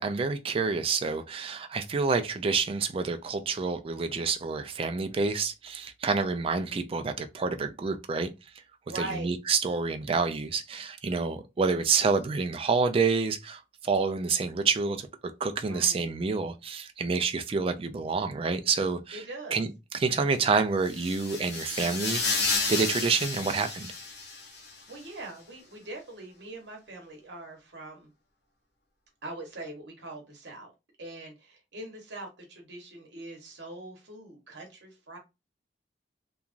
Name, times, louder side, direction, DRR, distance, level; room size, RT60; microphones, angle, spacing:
voice 1, 0.0-8.3 8.9-15.1 15.4-19.2 19.5-19.7 19.9-22.2 22.7-23.9, right 4 dB, 30° right, 0.3 m, -28 dB
voice 2, 8.9-9.3 15.6-16.1 19.1-19.6 24.6-28.1 29.2-30.7 31.0-35.2, right 2 dB, 70° right, 1.0 m, -42 dB
sound 1, 20.8-24.7, left 4 dB, 70° left, 0.9 m, -31 dB
2.9 x 2.3 x 2.4 m
head